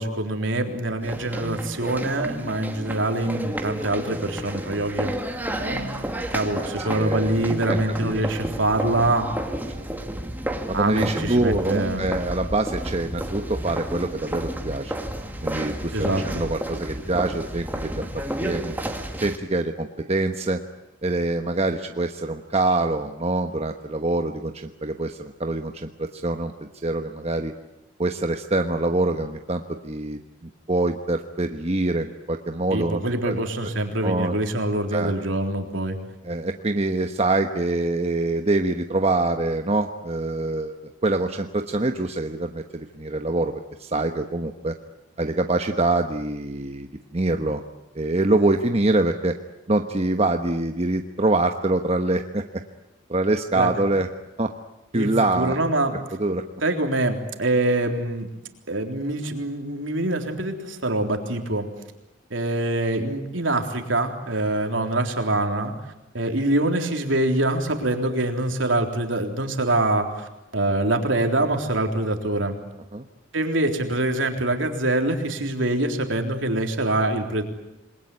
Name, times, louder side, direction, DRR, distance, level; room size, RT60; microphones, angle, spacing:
voice 1, 0.0-5.3 5.6-9.3 10.7-12.0 15.9-16.4 32.7-36.0 53.5-53.7 54.9-56.0 56.6-58.3 58.7-61.7 62.3-72.6 73.3-77.4, right 1 dB, 70° right, 4 dB, 3.7 m, -25 dB
sound 1, 1.0-19.4, right 1 dB, 10° right, 2.3 m, -31 dB
voice 2, 6.9-7.8 9.7-9.9 10.7-15.0 15.4-16.1 16.3-18.0 18.4-18.7 19.2-20.6 21.0-27.5 28.0-33.4 34.0-34.3 34.9-35.1 36.2-40.7 41.0-44.7 45.2-47.6 47.9-49.3 49.7-52.6 53.1-54.1 54.4-54.5 54.9-55.6 56.2-56.4 72.9-73.0, right 2 dB, 30° right, 5 dB, 1.1 m, -25 dB
28.0 x 21.5 x 9.8 m, 0.94 s
head